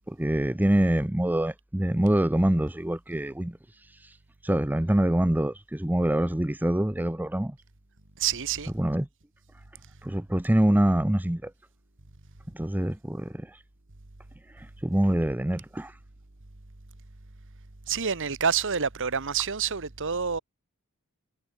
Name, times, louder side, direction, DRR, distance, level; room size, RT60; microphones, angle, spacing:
voice 1, 0.1-3.6 4.4-7.5 8.8-9.1 10.0-11.5 12.5-13.5 14.6-15.9, right 1 dB, 10° right, 0.6 m, -25 dB
voice 2, 8.2-8.7 17.9-20.4, right 7 dB, 60° right, 1.5 m, -27 dB
head